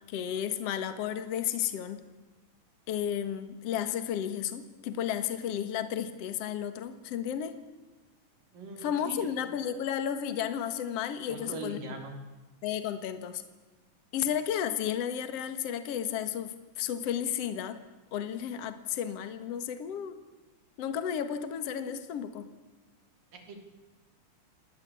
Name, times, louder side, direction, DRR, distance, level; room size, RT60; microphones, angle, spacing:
voice 1, 0.1-2.0 2.9-7.6 8.8-11.9 12.6-13.4 14.1-17.8 18.1-20.2 20.8-22.5, left 9 dB, 55° left, 10 dB, 2.3 m, -33 dB
voice 2, 8.5-9.5 11.3-12.2 23.3-23.6, right 3 dB, 80° right, 5 dB, 5.1 m, -41 dB
27.5 x 19.0 x 8.4 m, 1.2 s
omnidirectional pair, 3.8 m